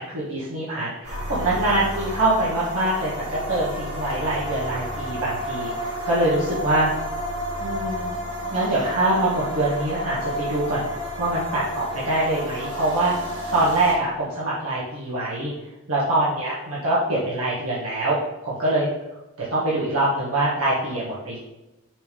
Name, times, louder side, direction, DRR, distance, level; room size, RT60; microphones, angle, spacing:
voice 1, 0.0-6.9 7.6-8.1 8.5-10.9 11.2-15.5 15.9-18.9 19.5-21.4, right 1 dB, 80° right, -8 dB, 1.6 m, -24 dB
sound 1, 1.0-13.9, equal, 55° right, 2.1 m, -31 dB
6.0 x 3.5 x 5.2 m, 0.97 s
head